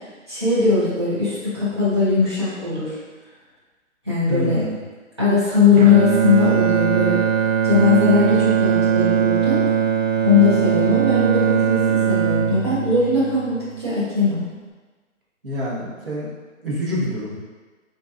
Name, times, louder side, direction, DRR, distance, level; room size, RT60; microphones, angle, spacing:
voice 1, 0.3-3.0 4.0-4.6 5.2-7.2 7.6-9.6 10.2-14.4, left 5 dB, 20° right, -12 dB, 0.7 m, -19 dB
voice 2, 4.3-4.8 15.4-16.3 16.6-17.3, equal, 45° right, -6 dB, 1.1 m, -26 dB
Bowed string instrument, 5.8-14.0, right 8 dB, 70° right, 0.5 m, -20 dB
3.9 x 3.8 x 2.4 m, 1.3 s
hypercardioid pair, 180°, 40 cm